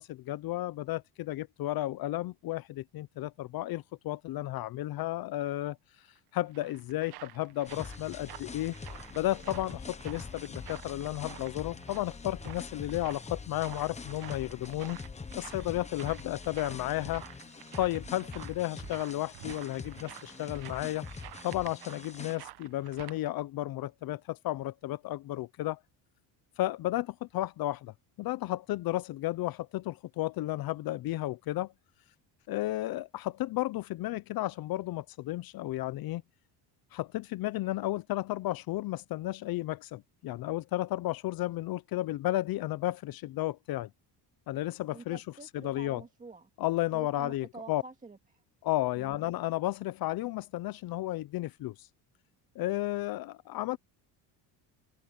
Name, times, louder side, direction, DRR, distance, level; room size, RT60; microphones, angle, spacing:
voice 1, 0.0-5.8 6.3-8.7 9.1-15.0 15.4-17.2 17.8-21.1 21.4-25.8 26.6-31.7 32.5-36.2 36.9-43.9 44.5-45.2 45.5-46.0 46.6-47.8 48.6-51.9 52.6-53.8, left 16 dB, 55° left, 0.6 m, -33 dB
sound 1, 6.2-23.2, right 15 dB, 65° right, 1.1 m, -50 dB
sound 2, 7.6-22.4, left 4 dB, 15° left, 1.1 m, -44 dB
voice 2, 44.9-46.5 46.9-48.4 49.0-49.2, right 3 dB, 20° right, 2.1 m, -48 dB
cardioid pair, 135°, 42 cm